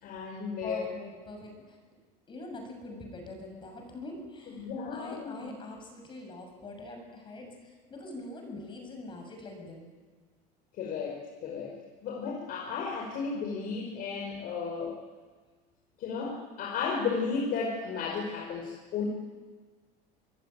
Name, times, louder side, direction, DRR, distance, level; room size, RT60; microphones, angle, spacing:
voice 1, 0.0-0.9 4.6-5.3 10.8-11.7 12.0-15.0 16.0-19.0, left 5 dB, 45° left, -1 dB, 5.3 m, -34 dB
voice 2, 0.6-1.8 2.3-9.9, left 2 dB, 25° left, 3 dB, 7.1 m, -43 dB
25.5 x 22.0 x 9.1 m, 1.4 s
cardioid pair, 145°, 21 cm